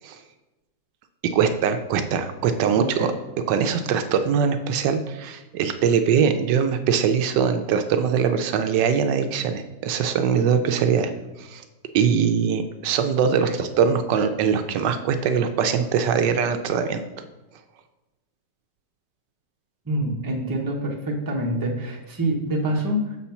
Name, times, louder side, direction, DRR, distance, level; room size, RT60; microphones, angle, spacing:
voice 1, 1.2-3.1 3.5-11.1 11.4-11.6 11.9-17.0, right 7 dB, 80° right, 8 dB, 1.2 m, -22 dB
voice 2, 2.8-3.1 13.4-13.6 19.8-23.2, right 1 dB, 15° right, -1 dB, 0.8 m, -26 dB
6.7 x 4.3 x 5.6 m, 1.1 s
omnidirectional pair, 1.9 m